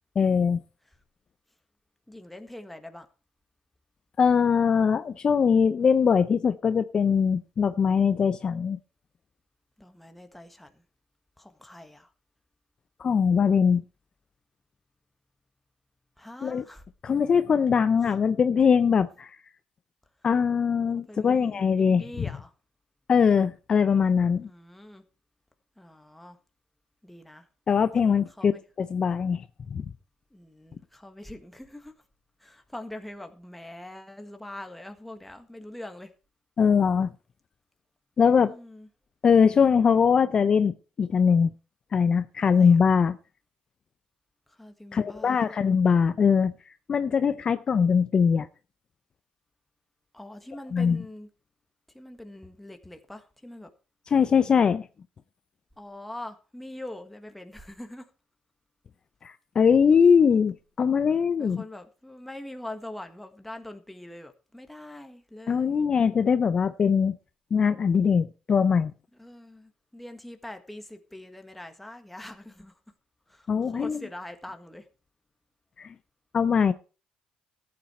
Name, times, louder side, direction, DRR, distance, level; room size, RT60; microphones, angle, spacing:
voice 1, 0.2-0.6 4.2-8.8 13.0-13.8 16.4-16.6 17.0-19.4 20.2-22.3 23.1-24.5 27.7-28.5 28.8-29.4 29.7-29.9 36.6-37.1 38.2-38.5 39.2-41.5 41.9-43.2 44.9-48.5 50.7-51.0 54.1-54.9 59.2-61.6 65.5-67.2 67.5-68.9 73.5-74.0 75.8-75.9 76.3-76.7, left 6 dB, 35° left, 0.6 m, -22 dB
voice 2, 2.1-3.1 9.8-10.8 11.4-12.1 16.2-16.8 20.9-22.5 24.5-25.0 25.8-26.4 27.0-27.5 28.4-28.6 30.3-31.9 32.4-36.1 38.4-38.9 42.4-42.8 44.5-45.6 50.1-51.3 51.9-53.7 55.8-58.1 61.4-65.8 69.2-72.7 73.3-74.9, left 1 dB, 5° left, 1.6 m, -43 dB
14.5 x 8.6 x 4.4 m
cardioid pair, 125°, 2 cm